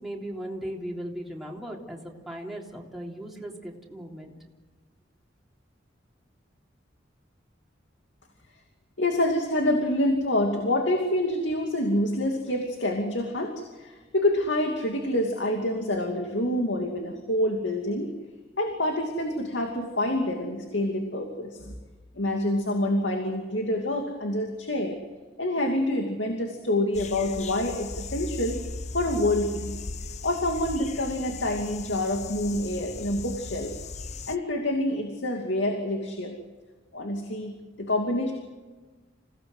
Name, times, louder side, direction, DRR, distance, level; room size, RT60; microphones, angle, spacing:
voice 1, 0.0-4.3, right 1 dB, ahead, -3 dB, 3.4 m, -37 dB
voice 2, 9.0-18.1 18.6-21.7 22.1-25.0 25.4-28.6 28.9-29.8 30.2-33.7 34.3-36.4 36.9-38.3, left 1 dB, 70° left, 2 dB, 2.7 m, -27 dB
sound 1, 26.9-34.4, left 3 dB, 35° left, 0.7 m, -37 dB
28.0 x 17.5 x 8.0 m, 1.3 s
head